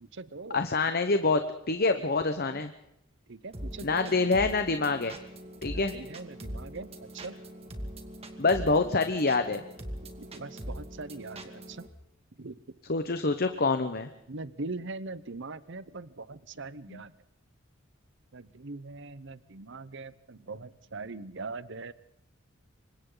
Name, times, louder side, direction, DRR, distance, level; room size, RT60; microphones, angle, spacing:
voice 1, 0.0-0.6 2.4-2.6 3.3-4.1 5.7-7.4 10.2-11.8 12.4-12.6 14.3-17.1 18.3-21.9, right 3 dB, 60° right, 16 dB, 1.0 m, -41 dB
voice 2, 0.5-1.4 1.7-2.7 3.8-5.1 5.6-5.9 8.4-9.6 12.9-14.1 16.9-17.0, left 3 dB, 50° left, 8 dB, 1.1 m, -26 dB
sound 1, 3.5-11.9, equal, 30° right, 2.4 m, -42 dB
28.5 x 25.0 x 4.0 m, 0.79 s
head